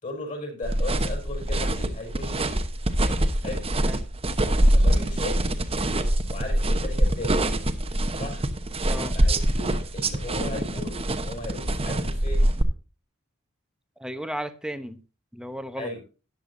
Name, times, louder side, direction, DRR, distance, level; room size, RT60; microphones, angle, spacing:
voice 1, 0.0-2.6 3.4-3.6 4.7-5.5 6.3-7.3 8.1-8.4 9.1-12.5 15.8-16.0, left 2 dB, 40° left, 3 dB, 5.0 m, -36 dB
sound 1, 0.6-12.6, right 1 dB, 30° right, 1.0 m, -24 dB
voice 2, 14.0-15.0 15.3-15.9, equal, 5° right, 9 dB, 0.9 m, -34 dB
13.5 x 10.0 x 2.7 m, 0.33 s
head